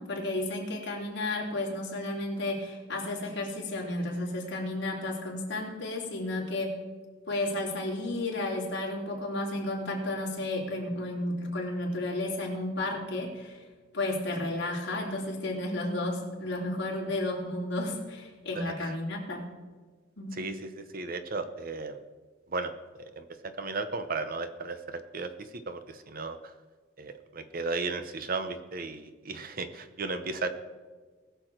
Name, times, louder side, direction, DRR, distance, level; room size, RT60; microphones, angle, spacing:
voice 1, 0.0-6.7 7.3-13.6 13.9-19.4 20.2-20.4, left 2 dB, 55° left, -2 dB, 3.1 m, -32 dB
voice 2, 18.5-18.9 20.4-22.0 22.5-22.7 23.2-23.3 23.6-26.4 27.0-30.5, right 3 dB, 45° right, 10 dB, 0.8 m, -35 dB
20.0 x 7.0 x 4.5 m, 1.4 s
head